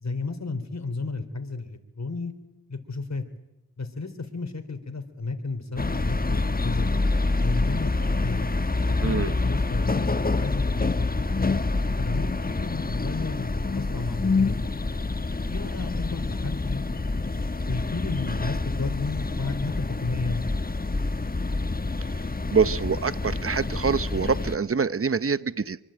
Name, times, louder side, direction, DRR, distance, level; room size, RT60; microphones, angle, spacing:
voice 1, 0.0-2.3 2.7-3.2 3.8-6.9 7.4-8.5 8.9-11.1 11.8-14.7 15.5-16.8 17.7-20.5, left 3 dB, 50° left, 7 dB, 3.7 m, -32 dB
sound 1, 5.8-24.5, left 3 dB, 25° left, 1.1 m, -27 dB
voice 2, 9.0-9.3 22.5-25.8, right 5 dB, 40° right, 16 dB, 1.0 m, -25 dB
24.5 x 24.0 x 9.0 m, 0.96 s
cardioid pair, 55°, 35 cm